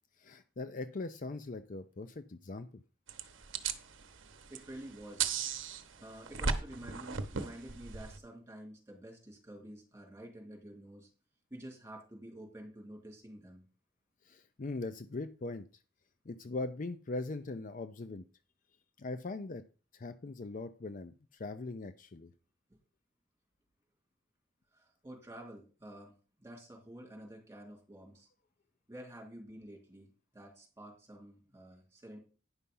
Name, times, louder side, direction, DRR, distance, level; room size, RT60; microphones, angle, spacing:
voice 1, 0.2-2.7 14.2-15.7 16.2-18.2 19.0-19.6 19.9-22.3, left 2 dB, 40° left, 11 dB, 0.5 m, -40 dB
sound 1, 3.1-8.2, right 5 dB, 75° right, 0.9 m, -37 dB
voice 2, 4.5-5.3 6.0-11.1 11.5-13.6 24.7-26.1 26.4-28.3 28.9-32.2, right 1 dB, 15° right, -1 dB, 3.3 m, -49 dB
9.7 x 5.6 x 5.5 m, 0.37 s
head